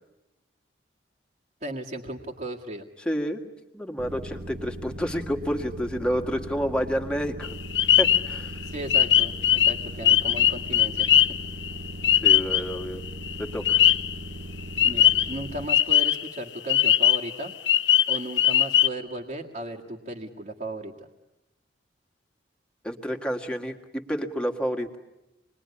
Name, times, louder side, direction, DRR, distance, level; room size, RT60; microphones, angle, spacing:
voice 1, 1.6-2.9 8.6-11.1 14.8-17.5 18.1-20.9, right 1 dB, 45° right, -4 dB, 2.0 m, -36 dB
voice 2, 3.0-3.4 3.7-7.5 8.0-8.6 12.2-13.0 13.4-13.8 22.8-25.0, equal, 5° left, 2 dB, 1.8 m, -29 dB
sound 1, 4.0-15.6, right 1 dB, 80° right, 2.4 m, -39 dB
sound 2, 7.4-12.8 13.1-14.1 14.8-16.4 16.7-18.9, left 11 dB, 80° left, 1.0 m, -20 dB
27.5 x 21.5 x 9.9 m, 0.96 s
head